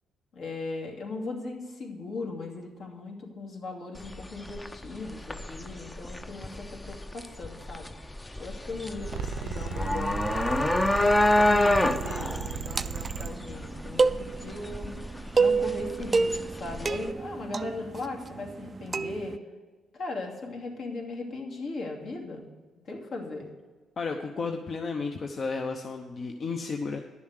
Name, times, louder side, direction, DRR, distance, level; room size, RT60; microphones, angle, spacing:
voice 1, 0.3-7.9 8.4-10.7 11.3-14.9 15.4-19.4 19.9-22.4 22.8-23.5, left 3 dB, 70° left, -1 dB, 2.6 m, -38 dB
sound 1, 4.0-17.1, left 1 dB, 15° left, 0.6 m, -28 dB
sound 2, 9.0-13.3, right 9 dB, 80° right, 0.7 m, -36 dB
sound 3, 12.2-19.4, right 4 dB, 30° right, 0.3 m, -29 dB
voice 2, 24.0-27.0, left 4 dB, 45° left, 4 dB, 0.8 m, -33 dB
11.0 x 7.1 x 6.5 m, 1.4 s
cardioid pair, 90°, 0 cm